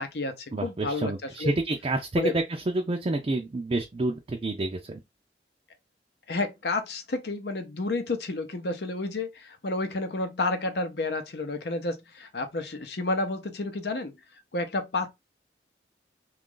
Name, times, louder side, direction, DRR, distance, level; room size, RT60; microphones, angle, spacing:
voice 1, 0.0-1.5 2.2-2.3 6.3-14.1 14.5-15.1, left 2 dB, 70° left, 0.7 m, -30 dB
voice 2, 0.5-5.0, right 2 dB, 30° right, 0.4 m, -29 dB
3.0 x 2.4 x 3.7 m
head